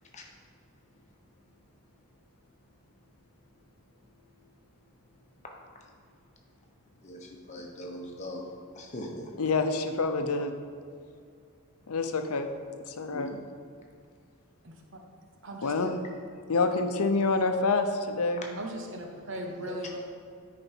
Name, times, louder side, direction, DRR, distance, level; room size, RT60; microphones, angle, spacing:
voice 1, 4.1-4.8 5.8-5.9 7.0-8.4 8.7-9.3 13.1-13.2 15.7-15.9 18.4-18.5 19.7-19.8, left 1 dB, 30° left, 0 dB, 1.1 m, -42 dB
voice 2, 9.4-10.6 11.9-12.5 12.9-13.4 15.6-15.9 16.5-18.4, left 3 dB, 85° left, 7 dB, 0.7 m, -27 dB
voice 3, 15.4-15.9 18.5-20.0, right 1 dB, 55° right, 2 dB, 0.8 m, -38 dB
9.9 x 5.1 x 4.5 m, 2.3 s
head